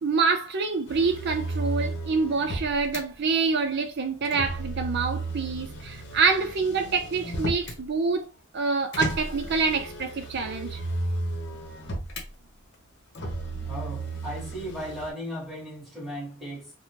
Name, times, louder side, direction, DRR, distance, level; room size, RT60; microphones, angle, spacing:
voice 1, 0.0-8.3 8.5-10.8, right 4 dB, 55° right, 0.5 m, -26 dB
Motor vehicle (road), 0.9-3.0 4.2-7.8 8.9-12.3 13.1-15.1, right 1 dB, 60° left, 0.8 m, -34 dB
voice 2, 13.6-16.7, equal, ahead, 1.5 m, -36 dB
3.3 x 2.1 x 2.8 m
head